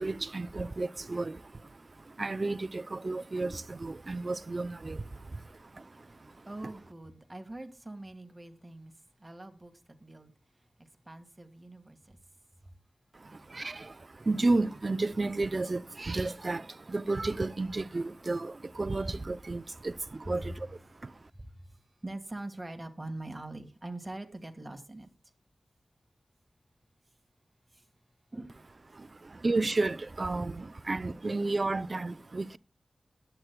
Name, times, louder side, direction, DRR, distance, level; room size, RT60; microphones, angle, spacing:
voice 1, 0.0-6.7 13.1-21.3 28.9-32.6, right 2 dB, 45° right, 0.5 m, -33 dB
voice 2, 6.4-8.9 9.2-9.7 10.0-10.3 10.8-12.2 12.6-12.7 20.3-20.4 21.3-25.1 27.7-27.8 28.3-28.7, right 2 dB, 25° right, 1.7 m, -43 dB
21.0 x 8.0 x 2.2 m
wide cardioid pair, 80°, 0 cm